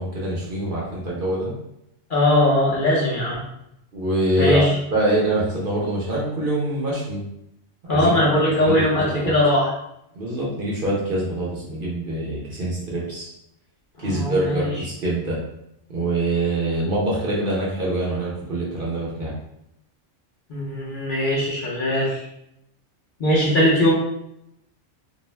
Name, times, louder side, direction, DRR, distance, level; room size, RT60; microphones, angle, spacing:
voice 1, 0.0-1.5 3.9-4.6 4.9-7.2 7.9-8.1 8.4-8.7 9.2-9.4 10.2-13.3 14.0-15.4 15.9-19.3, right 1 dB, 55° right, -5 dB, 0.8 m, -24 dB
voice 2, 2.1-3.4 4.4-4.7 7.9-9.7 14.0-14.7 20.5-22.2 23.2-23.9, left 1 dB, 50° left, -6 dB, 0.7 m, -20 dB
2.6 x 2.0 x 3.1 m, 0.80 s
omnidirectional pair, 1.3 m